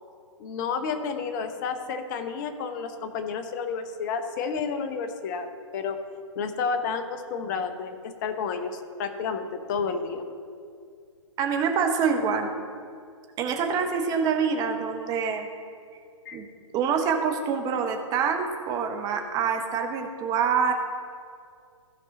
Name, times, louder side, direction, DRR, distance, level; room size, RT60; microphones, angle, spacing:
voice 1, 0.4-6.0 6.3-10.2 16.2-16.4, left 5 dB, 35° left, 8 dB, 0.9 m, -31 dB
voice 2, 11.4-12.5 13.4-15.5 16.3-16.5 16.7-20.7, right 6 dB, 20° right, 4 dB, 1.0 m, -26 dB
15.5 x 5.4 x 3.8 m, 2.2 s
figure-of-eight pair, 125°, 16 cm